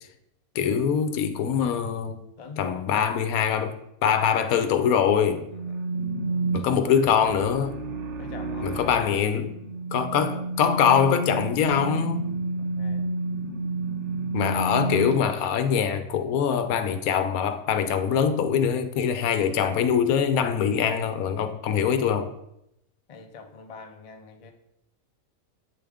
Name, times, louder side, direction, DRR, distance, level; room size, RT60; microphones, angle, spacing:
voice 1, 0.5-2.2 2.6-3.8 4.0-5.5 6.5-7.8 8.6-9.5 9.9-12.3 14.3-22.3, left 7 dB, 80° left, 1.1 m, -23 dB
voice 2, 2.4-2.8 5.7-5.8 8.2-8.8 12.6-13.1 23.1-24.5, left 5 dB, 55° left, 0.4 m, -44 dB
sound 1, 5.5-15.1, right 3 dB, 60° right, 1.0 m, -30 dB
8.3 x 3.5 x 3.4 m
omnidirectional pair, 1.5 m